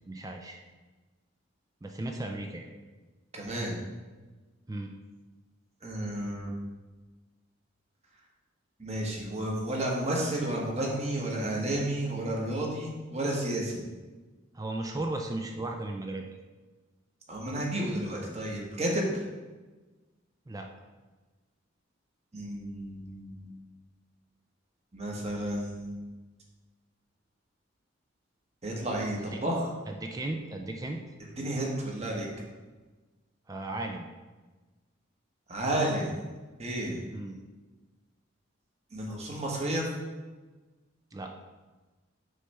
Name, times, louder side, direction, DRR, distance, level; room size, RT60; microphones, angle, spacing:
voice 1, 0.1-0.6 1.8-2.7 4.7-4.9 14.5-16.3 20.5-20.7 29.3-29.4 29.9-31.0 33.5-34.0 37.1-37.4 41.1-41.3, right 2 dB, 20° right, 3 dB, 0.5 m, -35 dB
voice 2, 3.3-3.8 5.8-6.5 8.8-13.8 17.3-19.2 22.3-23.5 24.9-26.0 28.6-29.7 31.4-32.3 35.5-36.1 36.6-37.0 38.9-39.9, right 1 dB, 35° right, -2 dB, 1.3 m, -31 dB
6.5 x 3.3 x 5.5 m, 1.2 s
head